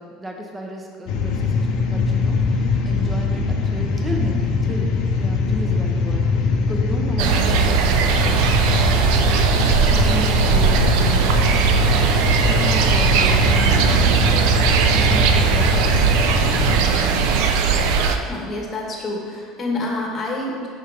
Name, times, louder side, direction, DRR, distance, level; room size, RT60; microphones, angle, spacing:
voice 1, 0.0-4.9 5.2-8.4 8.8-16.0, right 1 dB, 15° right, 0 dB, 0.8 m, -33 dB
sound 1, 1.1-16.8, left 4 dB, 70° left, 0.6 m, -22 dB
sound 2, 7.2-18.2, right 6 dB, 75° right, 0.4 m, -18 dB
voice 2, 18.3-20.7, left 2 dB, 30° left, -1 dB, 1.1 m, -27 dB
5.6 x 3.7 x 4.9 m, 2.1 s
supercardioid pair, 115°, 0 cm